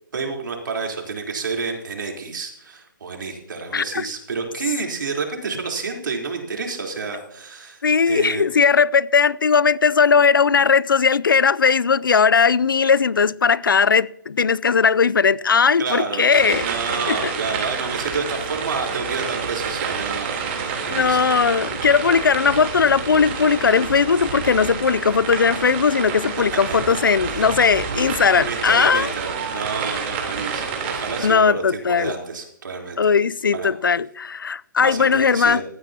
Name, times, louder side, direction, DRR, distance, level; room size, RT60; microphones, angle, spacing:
voice 1, 0.1-8.4 15.8-21.4 26.7-26.8 27.2-27.5 27.8-28.0 28.3-33.1 33.5-33.7 34.8-35.6, right 4 dB, 70° right, 3.8 m, -29 dB
voice 2, 3.7-4.1 7.8-16.6 17.1-17.3 20.9-29.1 31.2-32.1 33.0-35.6, left 6 dB, 85° left, 0.5 m, -18 dB
sound 1, 16.3-31.3, right 6 dB, 35° right, 3.5 m, -29 dB
17.0 x 14.5 x 2.9 m
hypercardioid pair, 150°, 11 cm